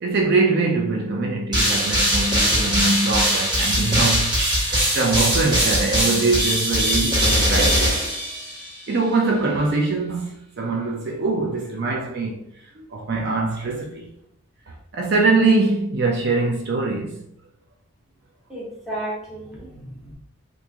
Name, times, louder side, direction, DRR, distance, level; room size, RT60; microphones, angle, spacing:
voice 1, 0.0-7.9 8.9-12.4 12.7-14.1 14.7-17.2, right 3 dB, 50° right, 0.5 m, -23 dB
sound 1, 1.5-8.8, equal, 20° right, 1.4 m, -21 dB
voice 2, 18.5-20.1, right 1 dB, ahead, 0.9 m, -33 dB
2.9 x 2.5 x 3.5 m
head